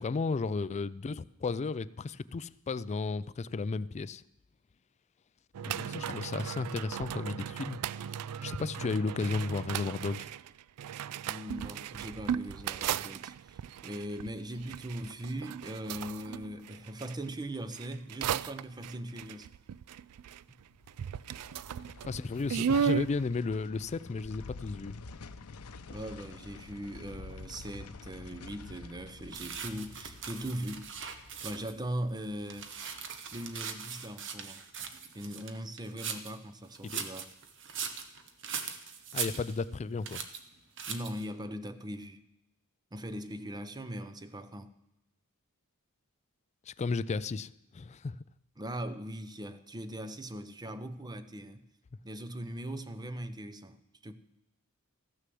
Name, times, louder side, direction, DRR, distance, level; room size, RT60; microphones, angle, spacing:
voice 1, 0.0-4.2 5.6-7.8 8.4-10.3 22.1-24.9 36.8-37.1 39.1-40.2 46.7-48.2, left 4 dB, 30° left, 0.3 m, -34 dB
sound 1, 5.5-17.2 17.7-20.6 20.9-23.1, right 8 dB, 85° right, 0.3 m, -36 dB
voice 2, 11.3-19.5 25.9-31.0 31.4-32.7 33.3-34.6 35.1-37.3 40.9-42.2 42.9-44.7 48.6-51.6 52.0-54.1, right 1 dB, 20° right, 0.7 m, -40 dB
sound 2, 20.7-33.9 34.2-34.3, left 3 dB, 80° left, 0.7 m, -49 dB
sound 3, 29.3-31.8 32.2-36.4 36.7-39.8 40.1-40.4 40.8-41.3, right 7 dB, 55° right, 1.1 m, -40 dB
14.0 x 6.6 x 7.7 m
head